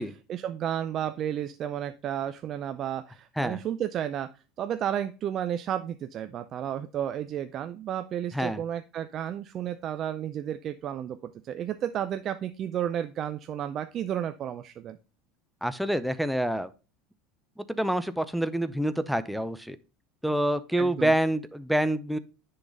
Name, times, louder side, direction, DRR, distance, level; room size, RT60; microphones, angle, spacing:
voice 1, 0.3-4.3 4.6-15.0 20.8-21.1, right 10 dB, 45° right, 10 dB, 0.5 m, -32 dB
voice 2, 15.6-16.7 17.6-19.8 20.2-22.2, right 1 dB, ahead, 12 dB, 0.6 m, -27 dB
9.9 x 3.9 x 3.9 m, 0.33 s
hypercardioid pair, 85°, 0 cm